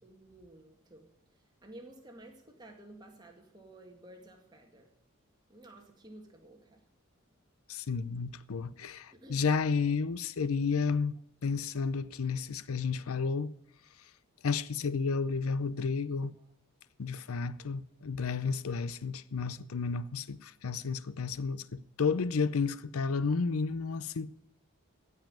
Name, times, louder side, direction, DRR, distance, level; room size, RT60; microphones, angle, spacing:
voice 1, 0.0-1.1 1.6-4.9 5.5-6.8 9.1-9.4, right 1 dB, 20° right, 2.0 m, -53 dB
voice 2, 7.7-13.5 14.4-16.4 17.0-24.3, left 5 dB, 80° left, 0.6 m, -32 dB
16.0 x 5.7 x 9.1 m
head